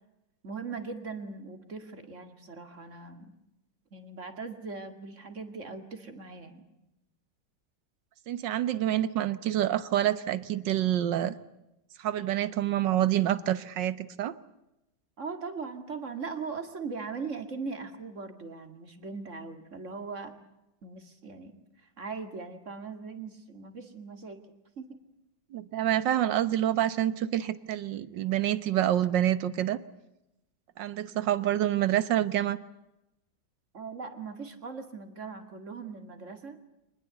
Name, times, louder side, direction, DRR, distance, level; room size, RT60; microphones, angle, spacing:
voice 1, 0.4-3.3 3.9-6.6 15.2-20.3 20.8-21.6 22.0-24.4 24.8-25.0 33.7-36.6, right 4 dB, 45° right, 7 dB, 2.5 m, -40 dB
voice 2, 8.3-11.4 12.0-14.3 25.5-29.8 30.8-32.6, right 12 dB, 85° right, 15 dB, 1.7 m, -27 dB
24.5 x 20.0 x 8.1 m, 0.90 s
omnidirectional pair, 1.9 m